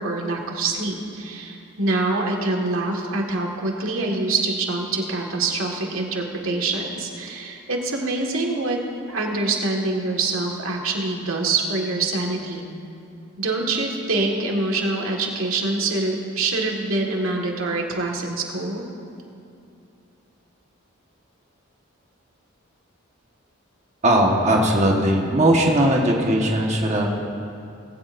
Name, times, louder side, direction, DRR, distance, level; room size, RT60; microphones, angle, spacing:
voice 1, 0.0-8.8 9.1-12.7 13.4-18.8, right 3 dB, 85° right, 0 dB, 1.8 m, -25 dB
voice 2, 24.0-27.2, right 1 dB, 35° right, -1 dB, 1.4 m, -19 dB
20.0 x 16.0 x 2.6 m, 2.6 s
head